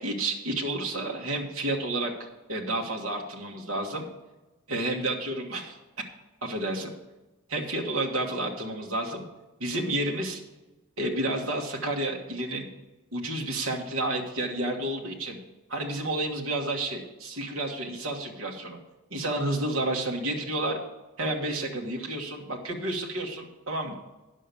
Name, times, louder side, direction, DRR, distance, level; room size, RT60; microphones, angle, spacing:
voice 1, 0.0-2.1 2.5-4.1 4.7-5.8 6.4-6.9 7.5-9.2 9.6-10.4 11.0-12.7 13.1-15.4 15.7-18.8 19.1-20.8 21.2-24.0, right 1 dB, 65° right, 0 dB, 1.6 m, -30 dB
9.9 x 6.5 x 7.0 m, 1.1 s
head